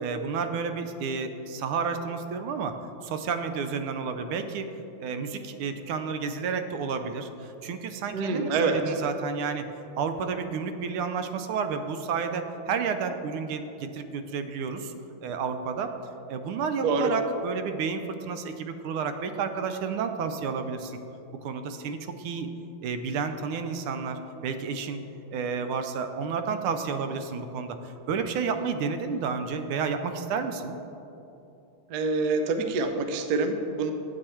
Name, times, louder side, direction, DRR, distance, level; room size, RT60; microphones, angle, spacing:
voice 1, 0.0-2.7 3.0-4.7 5.0-9.7 10.0-14.9 15.2-15.9 16.3-21.0 21.4-22.5 22.8-25.0 25.3-30.7, right 5 dB, 85° right, 8 dB, 1.4 m, -31 dB
voice 2, 8.1-8.9 16.8-17.1 31.9-33.9, right 3 dB, 65° right, 6 dB, 1.0 m, -26 dB
8.6 x 7.2 x 4.3 m, 2.9 s
omnidirectional pair, 2.3 m